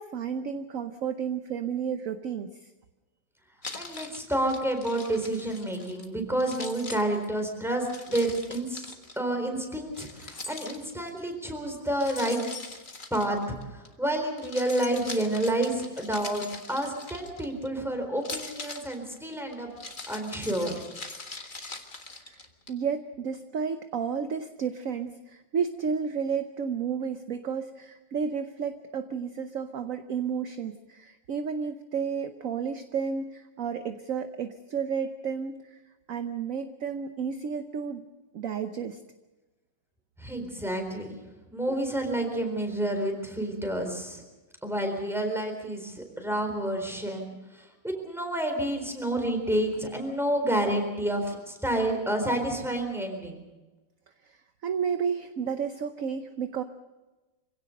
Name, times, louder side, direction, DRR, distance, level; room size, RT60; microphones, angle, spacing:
voice 1, 0.0-2.7 22.3-22.4 22.7-35.7 36.1-38.1 38.3-39.0 54.3-54.4 54.6-56.6, right 6 dB, 55° right, 8 dB, 1.1 m, -32 dB
Keys jangling, 3.6-6.1 6.4-9.2 9.9-11.2 12.0-13.9 14.3-17.7 18.2-22.7, left 3 dB, 30° left, 1.6 m, -41 dB
voice 2, 3.7-12.4 13.1-13.4 13.7-19.7 20.1-20.8 40.2-41.2 41.5-44.2 44.6-53.4, right 1 dB, ahead, 4 dB, 4.0 m, -29 dB
25.5 x 17.0 x 6.6 m, 1.1 s
omnidirectional pair, 2.0 m